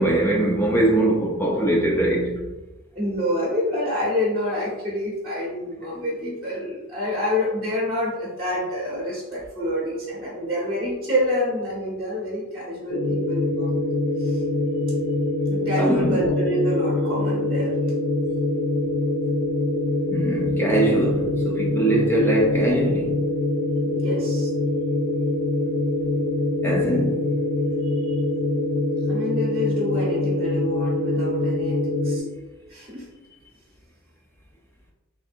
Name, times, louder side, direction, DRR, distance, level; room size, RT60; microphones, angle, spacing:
voice 1, 0.0-2.3 15.8-16.2 20.1-23.1 26.6-27.2, right 1 dB, 10° left, 0.4 m, -22 dB
voice 2, 2.9-13.9 14.2-14.4 15.5-17.8 23.8-24.5 27.8-28.2 29.1-32.2 32.7-33.1, left 1 dB, 25° right, 0.8 m, -27 dB
sound 1, 12.9-32.2, left 2 dB, 70° left, 1.2 m, -24 dB
3.4 x 2.6 x 2.5 m
head